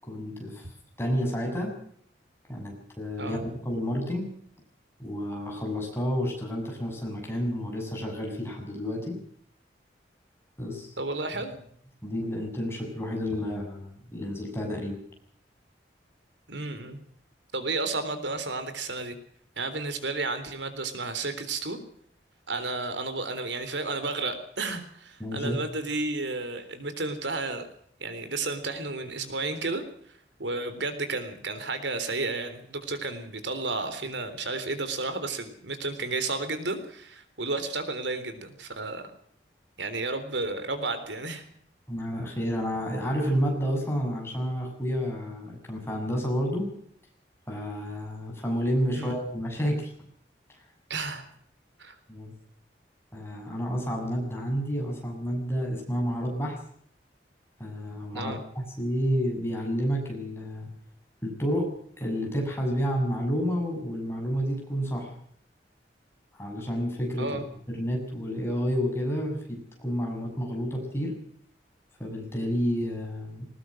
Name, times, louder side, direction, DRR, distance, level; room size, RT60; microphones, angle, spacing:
voice 1, 0.0-1.7 2.5-4.3 5.0-9.2 10.6-10.9 12.0-15.0 25.2-25.6 41.9-46.7 47.5-49.9 52.1-52.3 53.1-56.6 57.6-60.7 61.2-61.7 62.0-65.1 66.3-67.3 67.7-71.1 72.0-73.5, equal, 15° left, 0 dB, 7.2 m, -30 dB
voice 2, 11.0-11.6 16.5-17.0 17.5-19.2 19.6-21.8 22.5-27.7 28.0-29.8 30.4-39.0 39.8-41.4 48.9-49.1 50.9-51.2 51.8-52.0 58.1-58.4 67.2-67.4, right 3 dB, 85° right, 10 dB, 3.7 m, -32 dB
21.0 x 20.0 x 6.4 m, 0.63 s
head